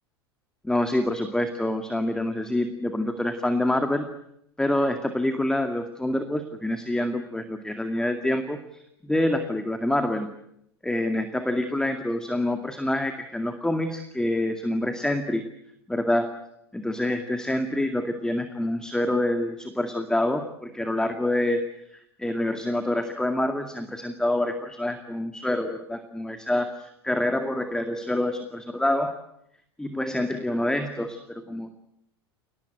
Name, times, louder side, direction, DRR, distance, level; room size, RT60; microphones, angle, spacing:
voice 1, 0.6-4.1 4.6-10.3 10.8-15.4 15.9-16.3 16.7-21.6 21.9-29.1 29.8-31.7, left 1 dB, 5° left, 7 dB, 2.1 m, -26 dB
29.0 x 19.0 x 9.2 m, 0.76 s
figure-of-eight pair, 85°, 13 cm